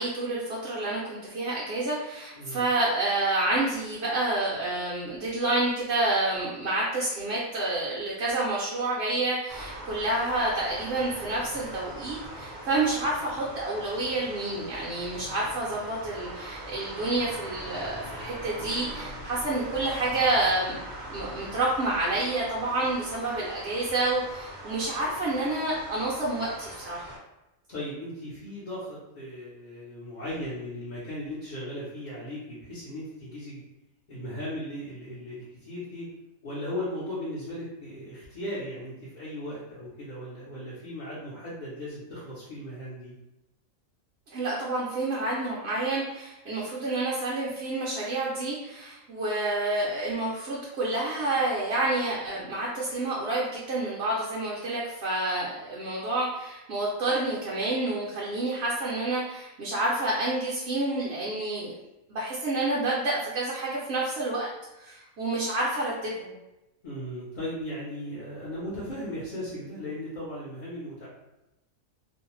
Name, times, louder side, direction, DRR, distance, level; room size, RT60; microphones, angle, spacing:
voice 1, 0.0-20.8 21.1-27.0 44.3-61.7 62.1-64.5 64.8-66.3, right 2 dB, 60° right, -6 dB, 0.8 m, -29 dB
sound 1, 9.5-27.2, right 1 dB, 25° right, 0.5 m, -41 dB
voice 2, 27.7-33.6 34.1-36.1 36.4-43.1 66.8-71.1, left 1 dB, 45° left, -10 dB, 0.7 m, -37 dB
2.6 x 2.1 x 2.9 m, 0.95 s
omnidirectional pair, 1.4 m